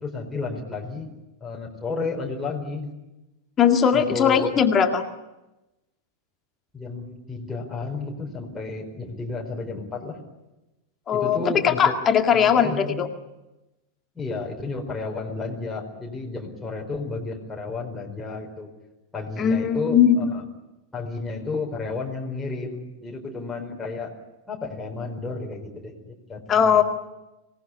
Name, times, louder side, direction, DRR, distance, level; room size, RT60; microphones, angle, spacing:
voice 1, 0.0-1.1 1.4-2.9 3.9-4.6 6.7-10.2 11.1-12.0 12.3-13.0 14.1-18.7 19.1-20.4 20.9-24.1 24.5-26.8, left 3 dB, 10° left, -2 dB, 4.6 m, -32 dB
voice 2, 3.6-5.0 11.1-13.1 19.4-20.3 26.5-26.8, left 8 dB, 25° left, 5 dB, 2.0 m, -19 dB
26.0 x 18.5 x 9.9 m, 1.0 s
figure-of-eight pair, 90°, 0 cm